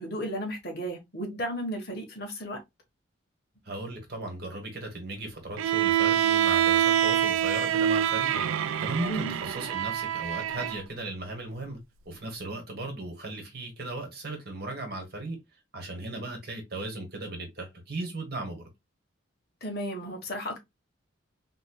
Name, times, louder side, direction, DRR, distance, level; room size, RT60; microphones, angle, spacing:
voice 1, 0.0-2.6 9.1-9.3 19.6-20.6, equal, 50° left, 1.2 m, -34 dB
voice 2, 3.6-11.8 12.0-15.4 15.7-18.7, right 2 dB, 50° right, 1.3 m, -37 dB
Bowed string instrument, 5.6-10.8, right 10 dB, 80° right, 0.3 m, -25 dB
3.7 x 3.1 x 2.2 m
head